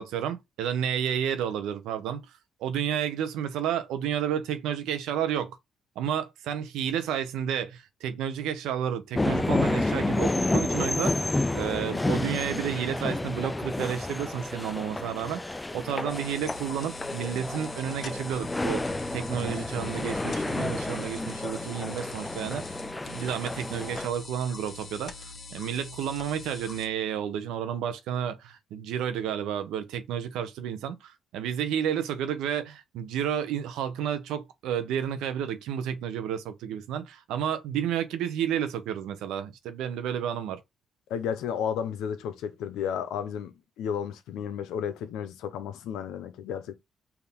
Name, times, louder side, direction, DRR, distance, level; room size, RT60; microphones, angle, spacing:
voice 1, 0.0-2.3 2.6-5.6 6.0-22.8 23.0-40.6, right 9 dB, 90° right, 0.7 m, -31 dB
sound 1, 9.1-24.1, left 2 dB, 15° left, 0.3 m, -30 dB
sound 2, 16.1-26.9, left 3 dB, 50° left, 1.1 m, -44 dB
voice 2, 41.1-46.7, left 8 dB, 90° left, 0.7 m, -33 dB
4.7 x 2.7 x 3.5 m
cardioid pair, 90°, 0 cm